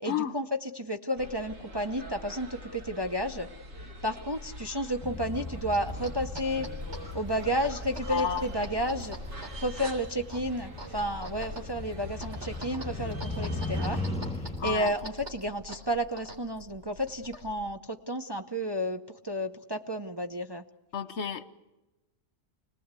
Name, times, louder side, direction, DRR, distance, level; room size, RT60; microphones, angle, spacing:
voice 1, 0.0-3.5 4.0-6.7 7.1-9.2 9.6-14.0 14.4-20.6, equal, 25° right, 4 dB, 0.7 m, -32 dB
sound 1, 1.2-14.1, equal, 80° right, 2.8 m, -44 dB
Motorcycle, 5.0-14.8, left 2 dB, 5° left, 1.6 m, -38 dB
sound 2, 5.6-17.7, equal, 60° right, 4.1 m, -45 dB
voice 2, 8.1-8.4 14.6-14.9 20.9-21.5, left 8 dB, 60° left, 12 dB, 1.3 m, -31 dB
26.0 x 19.0 x 8.2 m, 1.0 s
omnidirectional pair, 1.3 m